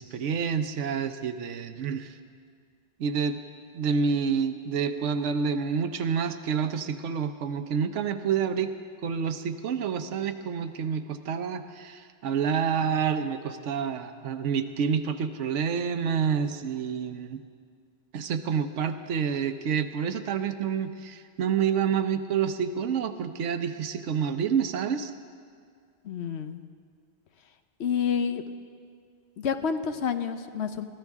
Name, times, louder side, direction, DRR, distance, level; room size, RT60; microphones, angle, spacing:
voice 1, 0.0-2.1 3.0-3.4 3.7-8.7 9.0-17.4 18.1-25.1, right 7 dB, 90° right, 10 dB, 1.1 m, -28 dB
voice 2, 26.0-26.6 27.8-28.4 29.4-30.9, left 7 dB, 70° left, 8 dB, 1.0 m, -29 dB
22.5 x 15.0 x 3.6 m, 2.2 s
omnidirectional pair, 1.2 m